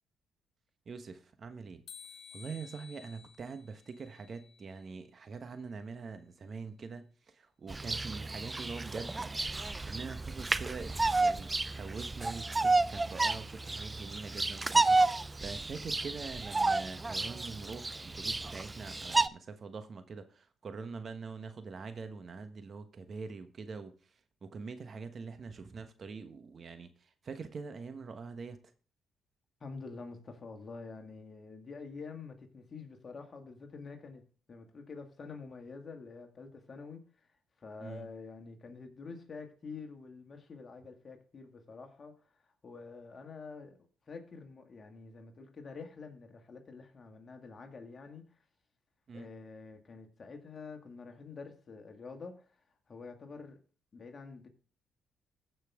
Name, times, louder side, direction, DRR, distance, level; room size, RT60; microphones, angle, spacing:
voice 1, 0.9-1.8 2.3-7.1 7.6-9.4 9.9-10.9 11.2-20.2 20.6-23.9 24.4-26.9 27.2-28.6 37.8-38.1 49.1-49.3, right 4 dB, 50° right, 9 dB, 1.2 m, -44 dB
sound 1, 1.9-5.0, left 6 dB, 65° left, 1.1 m, -53 dB
Bird vocalization bird call bird song, 7.7-19.3, right 3 dB, 20° right, 0.4 m, -31 dB
voice 2, 29.6-37.0 37.6-42.1 42.6-43.8 44.1-48.3 49.1-52.4 52.9-53.6 53.9-54.5, left 4 dB, 45° left, 4 dB, 2.0 m, -47 dB
15.0 x 5.7 x 3.6 m, 0.41 s
supercardioid pair, 60°, 0 cm